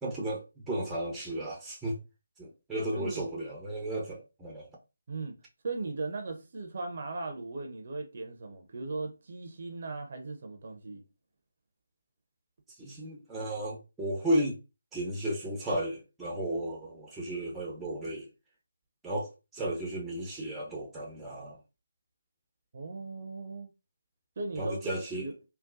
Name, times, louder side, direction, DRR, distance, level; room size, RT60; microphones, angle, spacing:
voice 1, 0.0-2.0 2.4-4.7 12.8-14.6 14.9-18.3 19.0-21.6 24.6-25.2, right 1 dB, 5° right, 0.7 m, -34 dB
voice 2, 2.9-3.3 5.1-5.4 5.6-11.0 22.7-23.7 24.4-25.3, right 3 dB, 45° right, 0.7 m, -38 dB
3.7 x 2.3 x 2.6 m
figure-of-eight pair, 155°, 0 cm